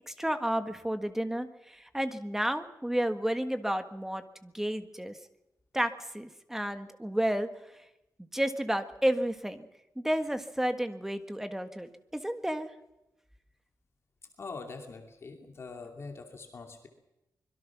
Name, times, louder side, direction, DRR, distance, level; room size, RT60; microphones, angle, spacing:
voice 1, 0.1-5.2 5.7-7.5 8.2-9.7 9.9-12.7, equal, 5° right, 8 dB, 1.6 m, -31 dB
voice 2, 14.4-16.9, left 4 dB, 40° left, 3 dB, 2.7 m, -43 dB
25.0 x 22.5 x 6.1 m, 0.92 s
wide cardioid pair, 160°, 7 cm